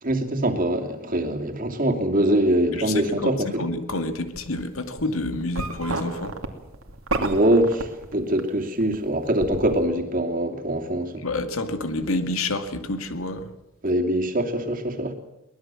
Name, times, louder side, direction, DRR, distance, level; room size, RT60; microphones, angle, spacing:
voice 1, 0.0-3.6 7.1-11.2 13.8-15.1, right 1 dB, 40° right, 3 dB, 2.8 m, -23 dB
voice 2, 2.7-6.3 11.2-13.5, left 2 dB, 85° left, 8 dB, 2.2 m, -28 dB
sound 1, 4.4-4.6 5.0-8.5 8.8-9.8, right 3 dB, 90° right, 2.7 m, -30 dB
23.5 x 19.5 x 7.7 m, 0.91 s
head